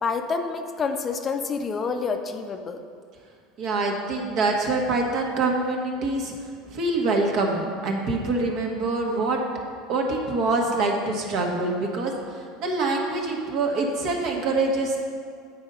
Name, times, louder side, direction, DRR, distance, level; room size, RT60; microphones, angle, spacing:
voice 1, 0.0-2.8, left 5 dB, 30° left, 6 dB, 0.5 m, -28 dB
voice 2, 3.6-6.3 6.6-9.4 9.9-15.0, right 3 dB, 55° right, 1 dB, 1.3 m, -25 dB
8.2 x 4.3 x 5.3 m, 2.2 s
hypercardioid pair, 90°, 0 cm